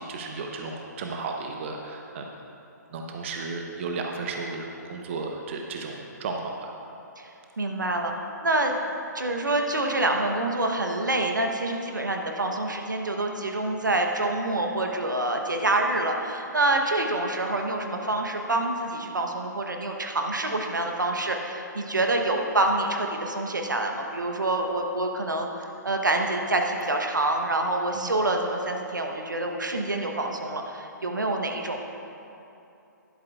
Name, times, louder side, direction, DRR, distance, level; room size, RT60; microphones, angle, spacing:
voice 1, 0.0-2.3 2.9-6.7 27.9-28.1, right 3 dB, 40° right, 2 dB, 0.8 m, -34 dB
voice 2, 7.6-8.1 8.4-8.7 9.1-32.1, right 2 dB, 75° right, 3 dB, 0.9 m, -27 dB
11.5 x 11.5 x 2.4 m, 2.8 s
figure-of-eight pair, 130°, 10 cm